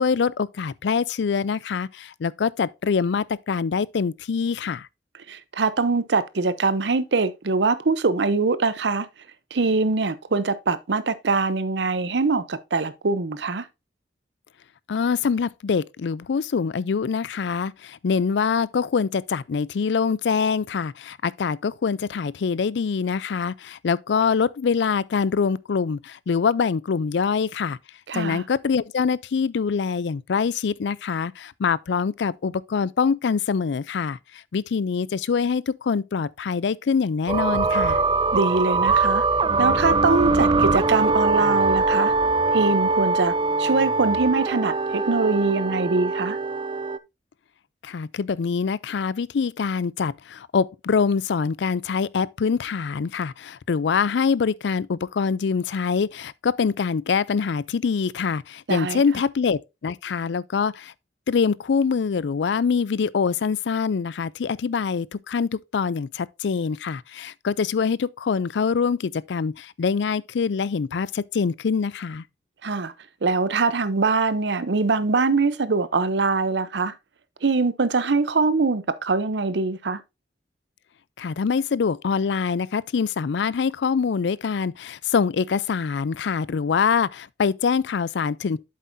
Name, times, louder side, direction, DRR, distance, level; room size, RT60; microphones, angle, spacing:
voice 1, 0.0-4.9 14.9-27.8 28.1-38.0 47.8-60.9 61.3-72.2 81.2-88.6, left 5 dB, 75° left, 0.4 m, -24 dB
voice 2, 5.3-9.1 9.5-13.7 28.1-28.4 38.3-39.2 39.6-42.1 42.5-46.4 58.7-59.0 72.6-72.9 73.2-76.9 77.4-80.0, right 3 dB, 70° right, 0.7 m, -23 dB
sound 1, 37.3-47.0, right 3 dB, 30° right, 0.4 m, -22 dB
8.4 x 7.5 x 2.6 m
head